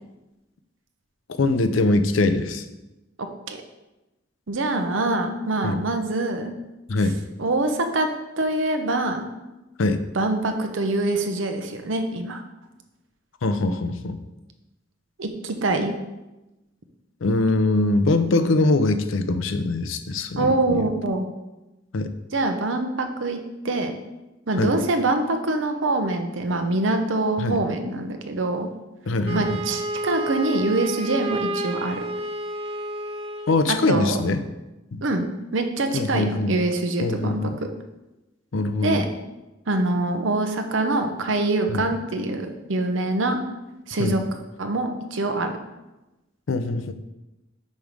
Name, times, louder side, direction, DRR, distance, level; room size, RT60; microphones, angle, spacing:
voice 1, 1.4-2.7 5.6-5.8 6.9-7.2 9.8-10.0 13.4-14.2 17.2-20.9 21.9-22.1 24.6-24.7 27.4-27.6 29.1-29.6 33.5-34.4 34.9-35.0 35.9-36.6 37.0-37.6 38.5-39.0 41.7-41.9 44.0-44.2 46.5-46.9, left 2 dB, 85° left, 10 dB, 0.5 m, -22 dB
voice 2, 3.2-3.6 4.5-6.5 7.4-8.1 8.4-9.3 10.1-12.4 15.2-15.9 20.4-21.3 22.3-24.0 24.5-28.7 29.3-32.0 33.7-34.2 35.0-35.3 35.5-37.5 38.8-39.1 39.7-43.4 43.9-44.2 44.6-45.5, right 2 dB, 80° right, 6 dB, 0.8 m, -24 dB
Wind instrument woodwind instrument, 29.2-33.7, right 1 dB, 30° right, 0.4 m, -30 dB
5.3 x 4.7 x 5.1 m, 1.0 s
head